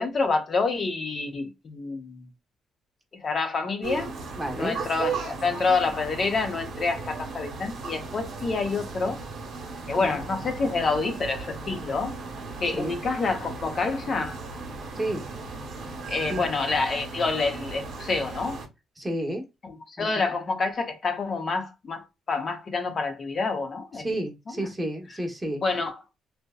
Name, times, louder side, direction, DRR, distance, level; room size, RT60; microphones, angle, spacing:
voice 1, 0.0-2.3 3.2-4.1 4.5-9.2 9.9-12.2 12.6-14.4 16.1-18.6 19.6-24.1 24.6-24.7 25.6-26.0, left 4 dB, 45° left, 0.6 m, -28 dB
sound 1, 3.8-18.7, right 4 dB, 65° right, 0.9 m, -36 dB
voice 2, 4.4-4.8 9.9-10.2 12.8-12.9 14.9-15.2 16.3-16.5 19.0-19.4 20.0-20.3 23.9-25.6, right 1 dB, 15° right, 0.8 m, -31 dB
2.7 x 2.1 x 2.2 m
cardioid pair, 90°, 0 cm